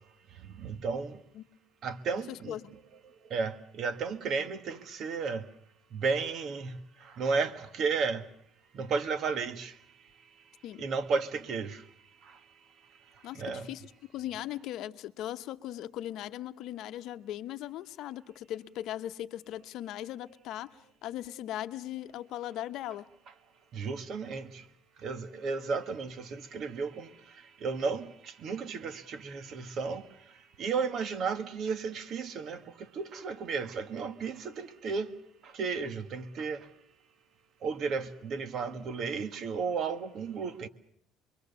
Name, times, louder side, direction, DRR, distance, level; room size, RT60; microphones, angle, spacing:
voice 1, 0.6-1.2 1.8-2.6 3.3-5.5 5.9-6.8 7.2-8.2 8.7-9.7 10.8-11.8 13.4-13.7 23.7-24.6 25.0-27.1 27.6-30.0 30.6-32.6 33.0-35.1 35.5-36.6 37.6-40.7, right 5 dB, 45° right, 1.7 m, -33 dB
voice 2, 2.3-2.7 10.6-10.8 13.2-23.1, left 12 dB, 60° left, 0.9 m, -39 dB
26.0 x 23.0 x 6.9 m
cardioid pair, 150°, 0 cm